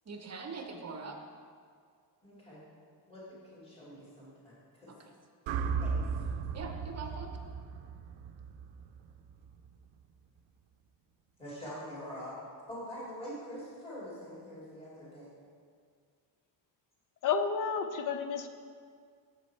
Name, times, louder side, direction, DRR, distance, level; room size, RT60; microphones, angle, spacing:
voice 1, 0.1-1.2 4.9-5.1 6.5-7.4, right 4 dB, 35° right, 4 dB, 0.7 m, -42 dB
voice 2, 2.2-2.6 3.1-4.9 5.8-6.2 11.4-12.4 12.7-15.3, equal, 15° left, -9 dB, 2.4 m, -45 dB
sound 1, 5.5-9.7, right 5 dB, 85° right, 0.6 m, -36 dB
voice 3, 17.2-18.5, left 6 dB, 45° left, 9 dB, 0.6 m, -31 dB
8.3 x 7.4 x 4.5 m, 2.1 s
cardioid pair, 160°, 44 cm